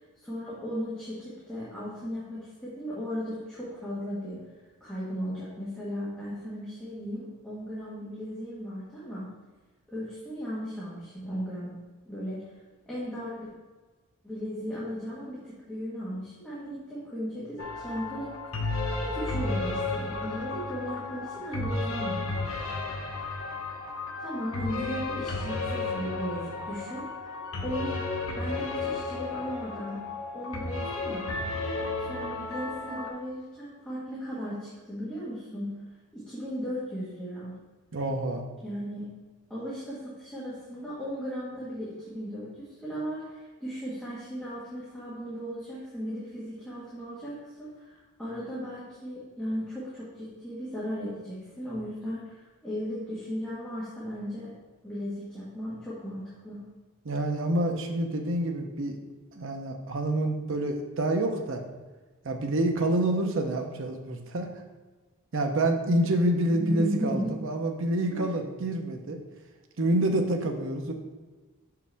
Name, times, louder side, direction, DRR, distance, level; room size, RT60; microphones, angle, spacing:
voice 1, 0.2-4.4 4.8-9.3 9.9-11.7 12.0-12.4 12.8-13.5 14.2-18.4 19.0-22.5 24.2-27.4 27.6-28.1 28.3-30.0 30.3-31.3 32.0-35.7 36.1-37.5 38.6-39.1 39.5-54.5 54.8-56.6 66.5-67.4 68.1-68.3, equal, 5° left, -10 dB, 1.4 m, -36 dB
sound 1, 17.6-33.1, left 3 dB, 70° left, 0.9 m, -33 dB
voice 2, 37.9-38.4 57.0-59.0 59.3-61.6 62.2-64.5 65.3-69.2 69.8-70.9, right 1 dB, 60° right, 4 dB, 0.7 m, -27 dB
6.1 x 4.8 x 3.4 m, 1.3 s
head